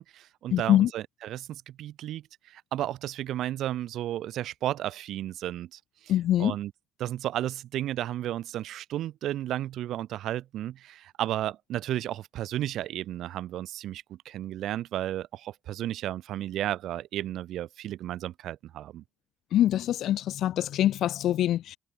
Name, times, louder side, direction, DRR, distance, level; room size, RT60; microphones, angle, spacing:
voice 1, 0.0-6.1 6.4-6.7 7.0-19.0, right 13 dB, 80° right, 2.0 m, -33 dB
voice 2, 0.5-0.9 6.1-6.5 19.5-21.8, left 12 dB, 80° left, 0.8 m, -24 dB
cardioid pair, 90°, 0 cm